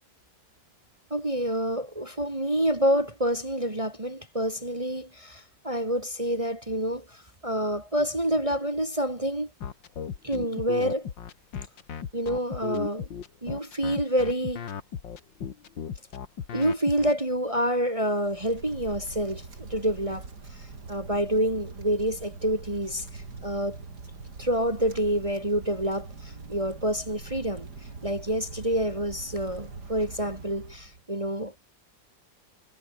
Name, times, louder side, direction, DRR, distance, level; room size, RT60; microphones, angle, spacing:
voice 1, 1.1-7.0 7.4-9.5 10.2-11.1 12.1-13.1 13.4-14.6 16.5-20.3 20.9-23.1 23.4-23.8 24.4-27.7 28.0-31.5, equal, 15° right, 2.0 m, -27 dB
sound 1, 9.6-17.1, left 7 dB, 70° left, 2.3 m, -36 dB
Wind, 18.2-31.0, right 4 dB, 55° right, 4.0 m, -43 dB
omnidirectional pair, 2.1 m